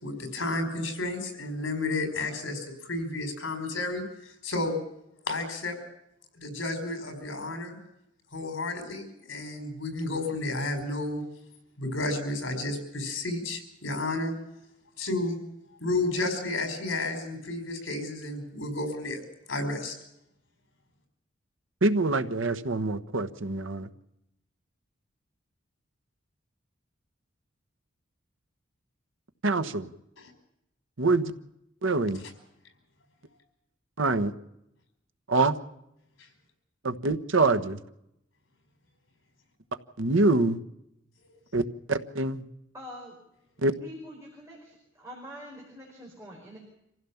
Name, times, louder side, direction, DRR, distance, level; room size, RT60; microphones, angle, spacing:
voice 1, 0.0-4.0 4.4-4.8 5.3-5.8 6.4-7.8 8.3-11.2 11.8-14.4 15.0-15.4 15.8-19.2 19.5-19.9, left 2 dB, 85° left, 6 dB, 5.0 m, -31 dB
voice 2, 21.8-23.9 29.4-29.9 31.0-31.3 31.8-32.2 34.0-34.3 35.3-35.6 36.8-37.8 40.0-40.6 41.5-41.6 41.9-42.4 43.6-43.7, right 3 dB, 90° right, 10 dB, 1.2 m, -25 dB
voice 3, 42.7-43.1 43.8-46.6, equal, 15° right, -2 dB, 5.0 m, -45 dB
26.0 x 15.5 x 7.2 m, 0.83 s
head